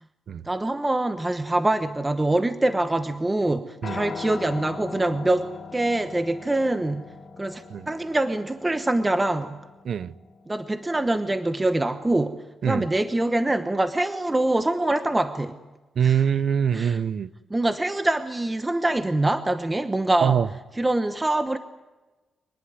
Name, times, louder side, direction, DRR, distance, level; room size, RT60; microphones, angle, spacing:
voice 1, 0.4-7.1 7.4-9.6 10.5-12.4 12.6-15.6 16.0-16.2 16.7-17.0 17.5-20.4 20.7-21.6, right 2 dB, 15° right, 1.1 m, -24 dB
Piano, 3.8-12.1, left 5 dB, 55° left, 4.7 m, -41 dB
voice 2, 16.0-17.3 20.2-20.5, right 8 dB, 60° right, 0.7 m, -23 dB
25.5 x 19.5 x 9.6 m
cardioid pair, 110°, 0 cm